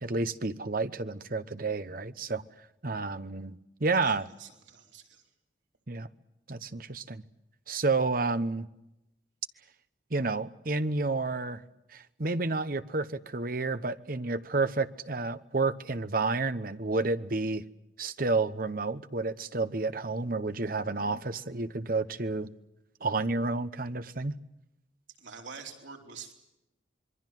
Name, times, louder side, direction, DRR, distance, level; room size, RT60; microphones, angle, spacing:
voice 1, 0.0-2.4 2.8-4.3 5.9-6.1 6.5-7.2 7.7-8.7 10.1-11.6 11.9-17.6 18.0-22.5 23.0-24.3, right 3 dB, 50° right, 12 dB, 1.0 m, -30 dB
voice 2, 4.0-5.2 25.2-26.3, right 5 dB, 85° right, 2 dB, 4.3 m, -46 dB
26.5 x 22.5 x 7.7 m, 0.89 s
head